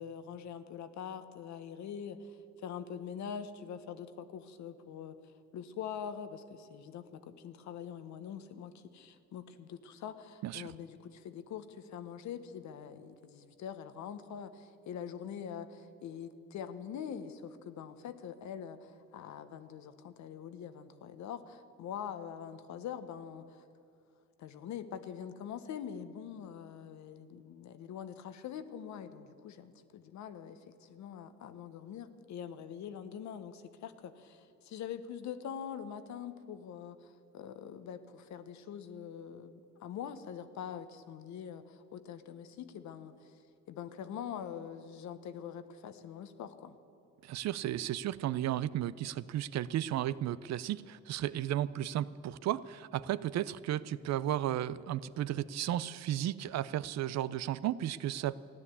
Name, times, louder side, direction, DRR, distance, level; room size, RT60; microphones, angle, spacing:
voice 1, 0.0-2.4 2.6-5.1 5.5-23.6 24.4-43.3 43.7-46.8, left 8 dB, 70° left, 11 dB, 1.0 m, -44 dB
voice 2, 10.4-10.7 47.2-58.3, right 12 dB, 65° right, 18 dB, 0.5 m, -34 dB
14.0 x 9.9 x 8.3 m, 2.7 s
supercardioid pair, 70°, 29 cm